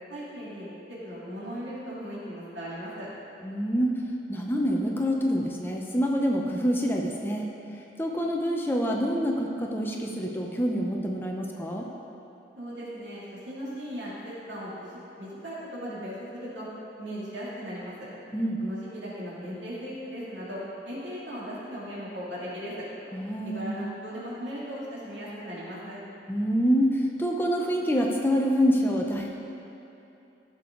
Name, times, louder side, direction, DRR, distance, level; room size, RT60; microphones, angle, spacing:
voice 1, 0.1-3.1 12.6-16.7 17.0-18.1 18.6-22.8 23.4-26.0, equal, 90° right, -8 dB, 2.7 m, -38 dB
voice 2, 3.4-3.9 4.3-7.4 8.0-11.9 18.3-18.6 23.1-23.9 26.3-29.3, equal, 10° left, 0 dB, 0.7 m, -26 dB
15.0 x 6.9 x 3.9 m, 2.8 s
head